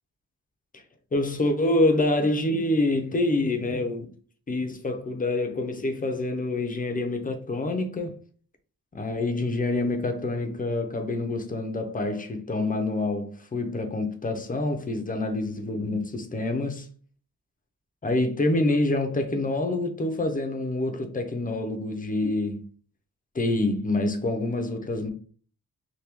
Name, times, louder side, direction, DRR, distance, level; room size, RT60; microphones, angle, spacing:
voice 1, 1.1-4.1 4.5-8.2 8.9-16.9 18.0-22.7 23.3-25.1, left 2 dB, 25° left, 0.5 m, -26 dB
3.3 x 2.2 x 2.9 m
wide cardioid pair, 145°, 37 cm